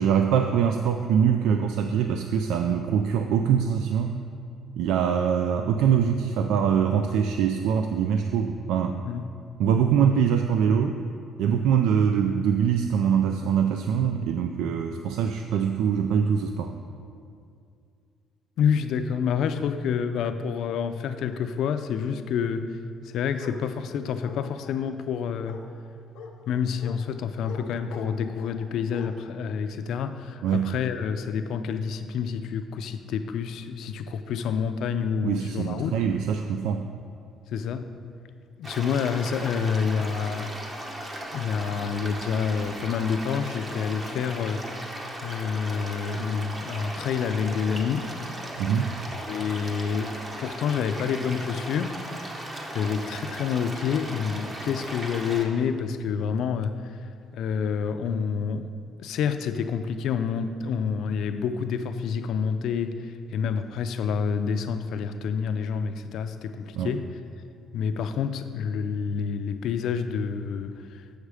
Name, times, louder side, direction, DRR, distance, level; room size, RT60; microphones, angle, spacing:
voice 1, 0.0-4.2 4.8-9.0 9.6-11.0 11.4-16.7 30.4-30.7 35.2-36.9 48.6-48.9 66.7-66.9, right 7 dB, 85° right, 6 dB, 0.4 m, -23 dB
voice 2, 18.6-22.7 23.1-25.6 26.5-36.0 37.5-37.9 38.6-40.6 41.3-44.9 45.2-48.1 49.2-52.0 52.7-57.0 57.3-58.7 59.0-67.0 67.7-71.0, left 6 dB, 65° left, 9 dB, 0.4 m, -28 dB
Bark, 23.4-23.6 24.2-24.8 25.4-25.6 26.1-26.3 26.8-27.0 27.4-27.6 27.9-28.6 28.9-29.1, left 6 dB, 90° left, 0.8 m, -42 dB
sound 1, 38.6-55.4, right 1 dB, 20° right, 0.9 m, -37 dB
8.2 x 6.4 x 4.9 m, 2.4 s
cardioid pair, 145°, 0 cm